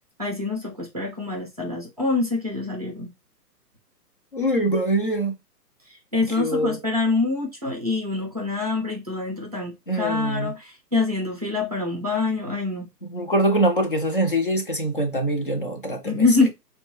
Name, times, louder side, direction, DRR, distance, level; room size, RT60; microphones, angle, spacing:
voice 1, 0.2-3.1 6.1-12.9 16.0-16.5, left 3 dB, 25° right, 0.5 m, -25 dB
voice 2, 4.3-5.3 6.4-6.8 9.9-10.5 13.0-16.3, right 1 dB, 35° left, 0.4 m, -23 dB
3.9 x 2.2 x 3.0 m
hypercardioid pair, 165°, 49 cm